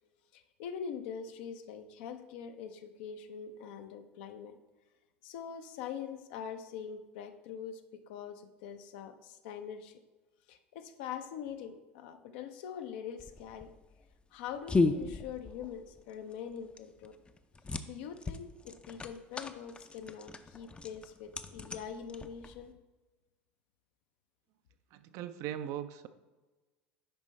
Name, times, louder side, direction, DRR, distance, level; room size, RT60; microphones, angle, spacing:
voice 1, 0.3-4.5 5.2-10.0 10.5-13.7 14.3-17.2 17.9-22.7, left 7 dB, 65° left, 8 dB, 0.6 m, -43 dB
sound 1, 13.2-22.7, left 3 dB, 15° left, 0.5 m, -36 dB
voice 2, 24.9-26.1, right 11 dB, 55° right, 11 dB, 0.5 m, -39 dB
8.8 x 5.3 x 3.2 m, 1.2 s
hypercardioid pair, 75°, 6 cm